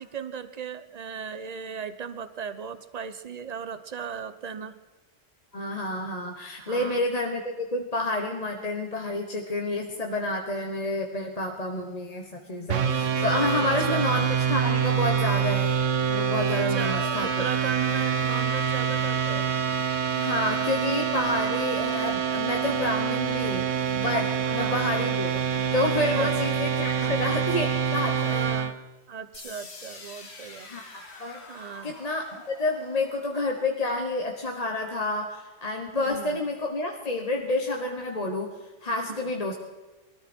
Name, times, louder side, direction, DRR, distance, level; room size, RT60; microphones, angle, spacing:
voice 1, 0.0-4.8 6.6-7.1 13.5-14.1 16.5-19.5 24.4-24.9 26.1-26.3 26.9-27.2 28.1-30.7 31.5-31.9 35.9-36.4 39.1-39.3, right 7 dB, 40° right, 12 dB, 0.8 m, -37 dB
voice 2, 5.5-15.7 16.1-17.3 20.2-25.4 25.7-28.5 30.7-38.5 38.8-39.5, left 2 dB, 35° left, 2 dB, 1.2 m, -29 dB
sound 1, 12.7-28.7, right 7 dB, 75° right, 1.2 m, -26 dB
sound 2, 29.3-35.3, left 3 dB, 55° left, 1.9 m, -47 dB
22.0 x 13.5 x 4.4 m, 1.2 s
omnidirectional pair, 1.3 m